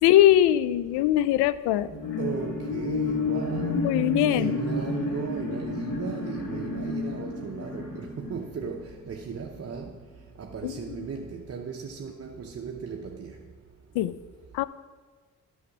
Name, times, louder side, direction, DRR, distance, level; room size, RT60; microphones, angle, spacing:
voice 1, 0.0-1.9 3.7-4.6 10.6-10.7 13.9-14.2 14.5-14.6, left 13 dB, 70° left, 17 dB, 0.5 m, -21 dB
sound 1, 1.8-9.6 10.1-10.2, left 2 dB, 50° left, 2.3 m, -31 dB
voice 2, 2.2-3.8 4.3-9.9 10.4-13.3, right 5 dB, 35° right, 1 dB, 0.9 m, -36 dB
9.5 x 6.5 x 6.0 m, 1.4 s
hypercardioid pair, 55°, 42 cm